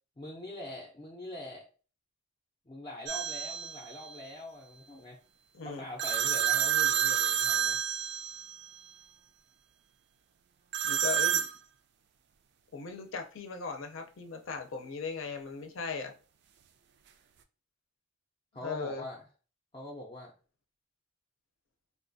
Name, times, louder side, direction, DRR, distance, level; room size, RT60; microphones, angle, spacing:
voice 1, 0.2-1.6 2.7-5.2 5.6-7.8 18.5-19.2 19.7-20.3, left 1 dB, 25° left, -1 dB, 0.5 m, -43 dB
sound 1, 3.1-3.8 6.0-8.6 10.7-11.5, right 9 dB, 55° right, 0.3 m, -29 dB
voice 2, 10.8-11.4 12.7-16.1 18.6-19.0, left 5 dB, 70° left, 5 dB, 0.6 m, -38 dB
3.6 x 2.3 x 2.6 m, 0.36 s
head